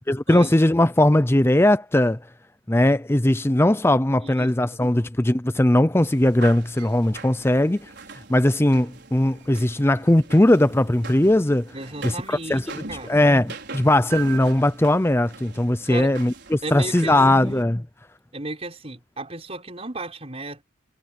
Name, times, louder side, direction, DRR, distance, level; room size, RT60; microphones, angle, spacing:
voice 1, 0.1-2.2 2.7-7.9 8.3-11.7 12.0-17.8, left 1 dB, 10° left, 0.6 m, -19 dB
voice 2, 4.2-5.0 11.7-13.2 15.9-16.1 16.6-17.6 18.3-20.6, right 2 dB, 30° right, 5.6 m, -35 dB
sound 1, 6.0-17.6, right 4 dB, 60° right, 5.6 m, -41 dB
head